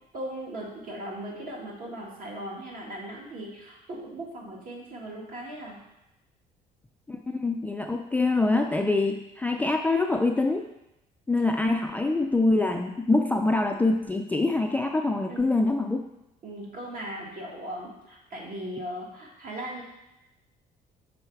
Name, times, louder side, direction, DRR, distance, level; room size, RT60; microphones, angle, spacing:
voice 1, 0.1-5.8 8.7-8.9 15.3-15.5 16.4-19.8, right 1 dB, 55° right, -2 dB, 1.7 m, -38 dB
voice 2, 7.1-10.7 11.3-16.0, left 2 dB, 10° left, 3 dB, 0.3 m, -25 dB
5.5 x 4.2 x 4.5 m, 0.91 s
cardioid pair, 110°, 17 cm